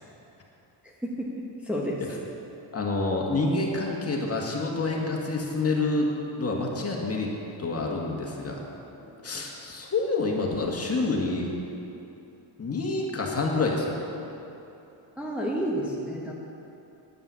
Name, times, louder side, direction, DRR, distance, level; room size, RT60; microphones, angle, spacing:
voice 1, 1.6-2.0 9.0-9.1 15.2-16.3, equal, 5° right, -4 dB, 1.3 m, -30 dB
voice 2, 2.7-6.1 6.4-7.3 7.6-8.6 9.2-11.5 12.6-13.9, left 3 dB, 30° left, -1 dB, 2.0 m, -27 dB
9.8 x 9.2 x 8.4 m, 2.9 s
cardioid pair, 120°, 48 cm